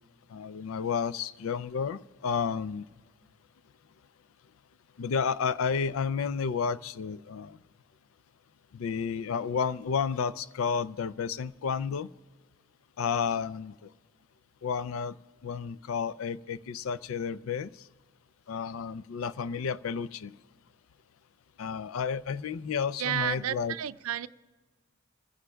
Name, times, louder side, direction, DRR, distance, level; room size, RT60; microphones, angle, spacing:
voice 1, 0.3-2.8 5.0-7.6 8.7-12.1 13.0-13.9 14.6-15.2 15.4-17.7 18.5-20.4 21.6-23.7, left 6 dB, 70° left, 18 dB, 0.4 m, -31 dB
voice 2, 23.0-24.3, right 10 dB, 85° right, 15 dB, 0.4 m, -31 dB
29.0 x 15.5 x 2.3 m, 1.3 s
head